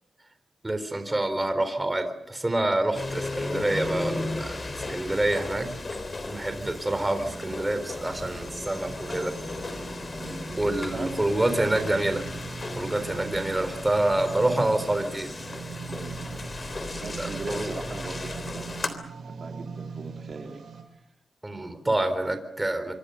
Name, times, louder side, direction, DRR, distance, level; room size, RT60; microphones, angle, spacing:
voice 1, 0.6-5.7 6.3-9.3 10.6-12.3 12.8-15.3 17.0-17.7 21.4-22.9, right 1 dB, 15° right, 9 dB, 4.0 m, -27 dB
sound 1, 2.9-18.9, left 2 dB, 35° left, 3.4 m, -36 dB
sound 2, 7.2-20.8, right 5 dB, 85° right, 6.4 m, -41 dB
voice 2, 10.2-11.2 15.9-16.2 17.0-18.7 19.1-20.7 20.9-21.0, right 3 dB, 50° right, 3 dB, 2.8 m, -40 dB
25.5 x 25.0 x 6.8 m, 0.78 s
wide cardioid pair, 110°, 0 cm